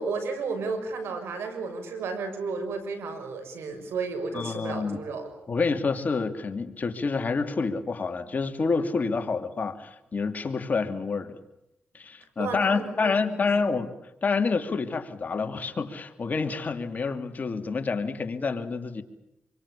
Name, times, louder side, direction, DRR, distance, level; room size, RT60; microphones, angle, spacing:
voice 1, 0.0-5.3 12.4-13.8, right 4 dB, 85° right, 7 dB, 6.4 m, -33 dB
voice 2, 4.3-5.0 5.5-11.4 11.9-13.9 14.2-19.0, left 4 dB, 45° left, 6 dB, 2.9 m, -28 dB
27.5 x 24.5 x 8.6 m, 0.86 s
cardioid pair, 80°, 4 cm